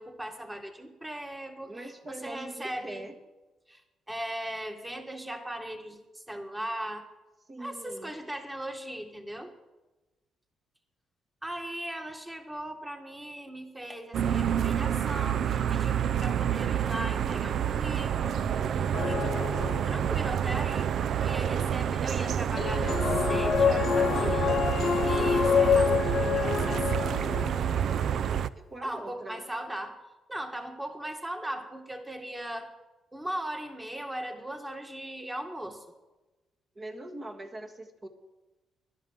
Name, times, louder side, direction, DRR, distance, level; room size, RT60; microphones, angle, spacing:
voice 1, 0.0-3.1 3.7-3.8 4.1-7.1 7.6-9.5 11.4-18.5 18.9-20.9 21.2-27.3 28.8-30.0 30.3-32.8 33.1-35.8, right 1 dB, 10° right, 4 dB, 1.9 m, -38 dB
voice 2, 1.6-3.1 7.5-8.1 28.6-29.4 36.8-38.1, right 1 dB, 35° right, 2 dB, 1.8 m, -42 dB
sound 1, 14.1-28.5, right 9 dB, 65° right, 0.4 m, -28 dB
sound 2, 18.9-20.3 22.6-27.8, left 7 dB, 55° left, 0.8 m, -27 dB
11.0 x 10.5 x 8.2 m, 1.1 s
cardioid pair, 90°, 0 cm